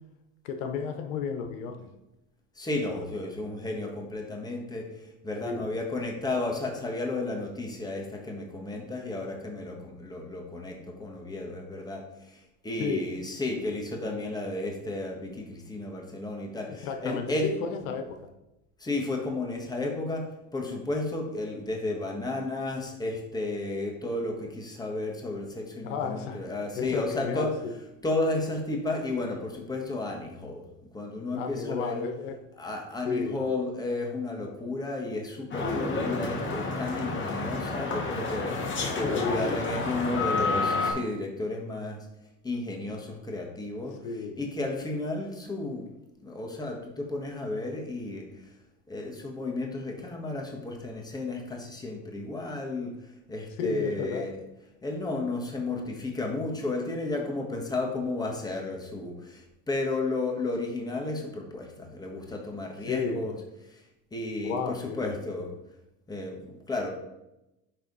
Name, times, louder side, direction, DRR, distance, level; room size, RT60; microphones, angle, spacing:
voice 1, 0.4-1.9 5.4-5.7 12.8-13.1 16.7-18.2 25.8-26.4 26.8-27.7 31.3-32.4 33.0-33.4 38.8-39.6 44.0-44.3 53.6-54.2 62.9-63.2 64.4-65.1, left 5 dB, 85° left, 5 dB, 1.0 m, -32 dB
voice 2, 2.5-17.5 18.8-27.6 28.0-32.1 32.6-42.1 42.4-44.0 44.3-45.9 46.2-48.5 48.9-53.0 53.3-54.4 54.8-63.3 63.7-63.8 64.1-65.5 66.1-66.9, left 2 dB, 10° left, 0 dB, 1.5 m, -33 dB
sound 1, 35.5-40.9, left 3 dB, 30° left, 1.6 m, -30 dB
10.0 x 3.4 x 4.0 m, 0.92 s
supercardioid pair, 110°, 38 cm